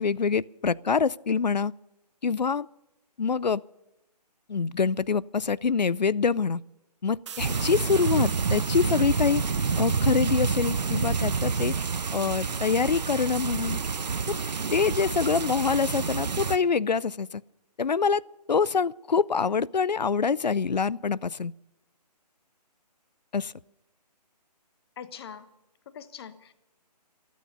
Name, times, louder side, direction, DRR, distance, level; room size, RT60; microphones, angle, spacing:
voice 1, 0.0-1.7 2.2-2.7 3.2-3.6 4.5-6.6 7.0-9.4 9.8-11.7 12.1-13.8 14.3-14.4 14.7-17.4 17.8-18.2 18.5-21.5 23.3-23.5, left 5 dB, 85° left, 0.6 m, -25 dB
sound 1, 7.3-10.9, right 8 dB, 45° right, 1.2 m, -46 dB
sound 2, 7.4-16.6, right 5 dB, 80° right, 0.8 m, -28 dB
voice 2, 25.0-25.5 25.9-26.5, left 8 dB, 35° left, 1.3 m, -42 dB
27.5 x 9.4 x 5.4 m
figure-of-eight pair, 145°, 21 cm